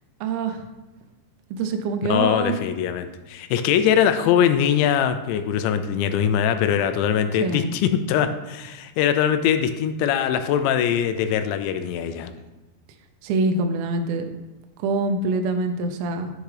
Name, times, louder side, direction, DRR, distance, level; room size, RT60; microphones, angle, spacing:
voice 1, 0.2-0.6 1.5-2.5 7.4-7.7 13.2-14.3 14.8-16.3, right 3 dB, 80° right, 5 dB, 2.2 m, -25 dB
voice 2, 2.0-12.3, left 9 dB, 85° left, 9 dB, 2.9 m, -22 dB
7.3 x 6.6 x 4.9 m, 1.1 s
omnidirectional pair, 5.1 m